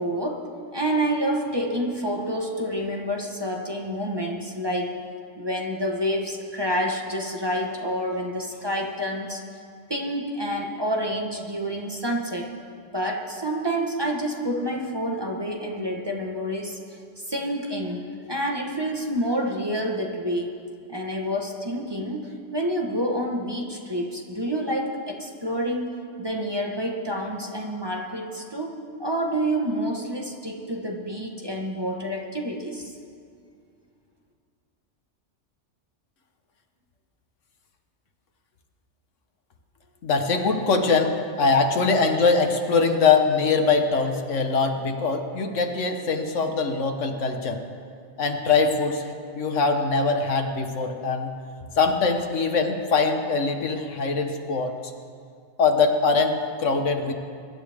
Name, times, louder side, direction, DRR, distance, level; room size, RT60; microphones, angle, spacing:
voice 1, 0.0-5.0 5.4-9.4 9.9-12.5 12.9-20.5 20.9-33.0, equal, 20° right, 0 dB, 1.3 m, -28 dB
voice 2, 40.0-47.6 48.2-51.3 51.8-54.7 55.6-57.1, left 4 dB, 85° left, 5 dB, 1.5 m, -22 dB
24.0 x 11.5 x 3.6 m, 2.3 s
omnidirectional pair, 1.2 m